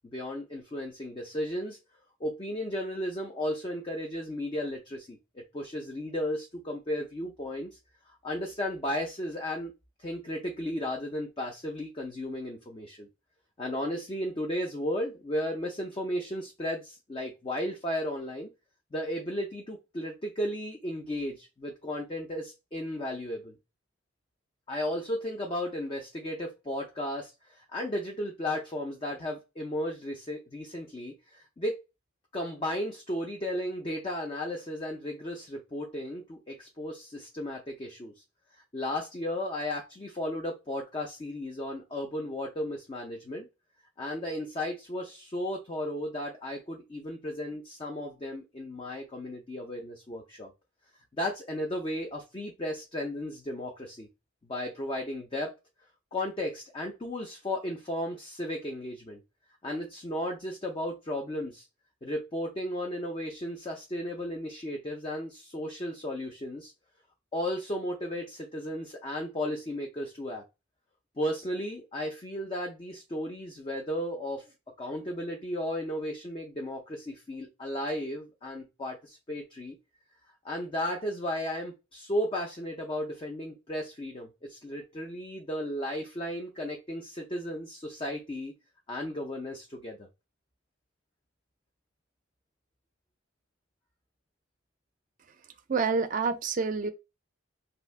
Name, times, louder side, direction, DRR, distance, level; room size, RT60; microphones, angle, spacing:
voice 1, 0.1-1.8 2.2-7.7 8.1-9.7 10.0-13.1 13.6-18.5 18.9-23.5 24.7-31.7 32.3-38.1 38.7-43.5 44.0-50.5 51.2-54.1 54.4-55.5 56.1-59.2 59.6-61.7 62.0-66.7 67.3-70.4 71.2-74.4 74.8-79.8 80.4-88.5 88.9-90.1, left 1 dB, 25° left, 0.4 m, -34 dB
voice 2, 95.7-96.9, right 4 dB, 40° right, 0.4 m, -27 dB
3.3 x 2.6 x 2.4 m
head